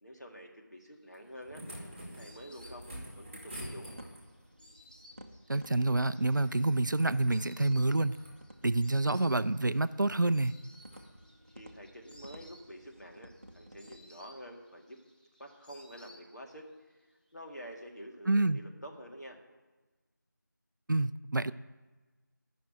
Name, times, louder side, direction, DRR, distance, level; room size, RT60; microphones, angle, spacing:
voice 1, 0.0-1.6 2.0-2.9 3.2-3.9 11.5-15.0 15.4-16.7 17.3-19.4, equal, 60° left, 1 dB, 2.0 m, -48 dB
Insect, 1.0-16.7 17.0-17.8, equal, 25° left, 1.0 m, -60 dB
sound 1, 1.1-4.5 6.4-7.4 7.8-8.4 8.9-9.3 10.0-10.2 10.8-11.0 12.4-12.5, equal, 10° right, 1.5 m, -48 dB
sound 2, 2.4-14.0, equal, 40° right, 0.7 m, -55 dB
voice 2, 5.5-8.2 8.6-10.5 18.3-18.6 20.9-21.5, right 2 dB, 70° right, 15 dB, 0.5 m, -28 dB
10.5 x 6.0 x 8.7 m, 1.2 s
figure-of-eight pair, 175°, 11 cm